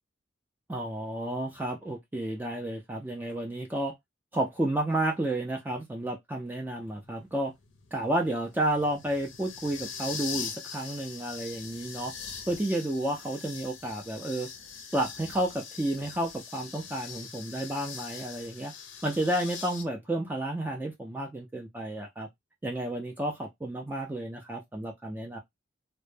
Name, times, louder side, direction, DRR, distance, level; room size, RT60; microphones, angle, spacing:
voice 1, 0.7-3.9 4.3-7.5 7.9-12.1 12.5-14.5 14.9-18.7 19.0-22.3 22.6-25.4, right 1 dB, 10° right, 0.3 m, -31 dB
sound 1, 6.7-19.8, left 6 dB, 80° left, 0.5 m, -42 dB
2.0 x 2.0 x 3.1 m
head